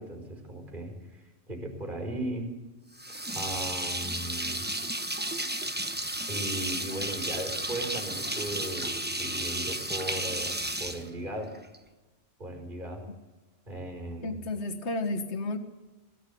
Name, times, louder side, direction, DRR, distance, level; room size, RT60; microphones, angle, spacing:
voice 1, 0.0-2.5 3.1-4.7 6.3-11.5 12.4-13.0 13.7-14.4, right 1 dB, 40° right, 2 dB, 5.0 m, -37 dB
sound 1, 3.0-11.8, right 1 dB, 10° right, 0.9 m, -33 dB
voice 2, 14.2-15.6, left 2 dB, 65° left, 5 dB, 1.8 m, -32 dB
22.0 x 15.0 x 8.5 m, 1.2 s
omnidirectional pair, 1.3 m